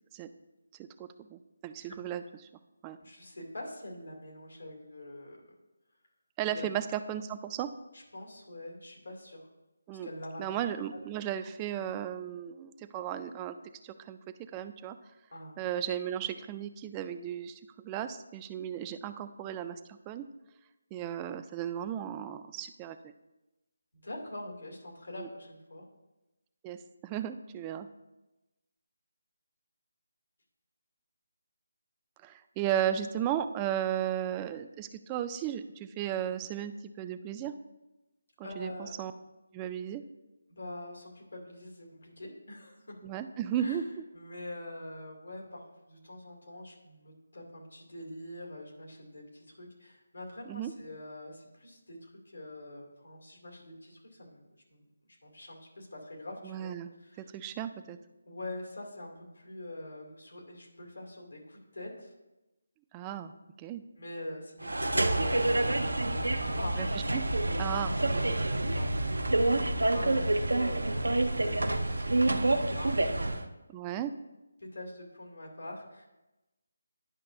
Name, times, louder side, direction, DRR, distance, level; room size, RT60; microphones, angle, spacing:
voice 1, 0.8-2.2 2.8-3.0 6.4-7.7 9.9-10.1 10.4-13.6 13.8-14.2 14.5-15.0 15.6-20.3 20.9-23.0 25.2-25.3 26.6-27.9 32.2-37.5 38.4-39.1 39.5-40.0 43.0-44.0 50.5-50.7 56.4-56.9 57.2-58.0 62.9-63.3 63.6-63.8 66.8-66.9 67.1-67.2 67.6-68.4 73.7-74.1, right 10 dB, 20° right, 9 dB, 0.3 m, -35 dB
voice 2, 3.0-5.5 6.5-6.7 7.9-9.5 10.0-10.6 10.9-11.0 15.3-15.6 23.9-25.8 38.4-38.9 40.5-43.0 43.6-43.8 44.1-54.4 54.7-56.7 57.0-57.3 58.3-62.1 64.0-66.2 66.5-66.9 68.7-69.4 69.9-73.4 74.6-76.1, left 1 dB, 80° left, -1 dB, 2.3 m, -44 dB
sound 1, 64.6-73.5, right 2 dB, 85° right, 0.6 m, -28 dB
10.5 x 5.7 x 2.6 m, 1.0 s
figure-of-eight pair, 155°, 0 cm